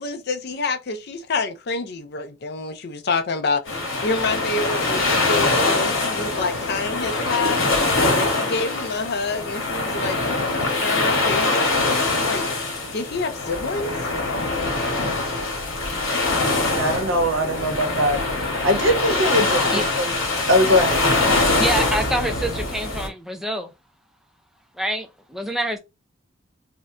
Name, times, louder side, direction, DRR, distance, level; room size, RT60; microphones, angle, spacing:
voice 1, 0.0-7.6 8.1-11.8 12.2-12.5 12.9-13.9, left 3 dB, 50° left, 0.5 m, -27 dB
sound 1, 3.7-23.1, left 2 dB, 75° left, 1.1 m, -23 dB
voice 2, 16.7-20.2 20.5-21.0, equal, 75° right, 0.9 m, -21 dB
voice 3, 21.6-23.7 24.8-25.8, right 1 dB, ahead, 0.4 m, -26 dB
2.7 x 2.1 x 3.6 m
head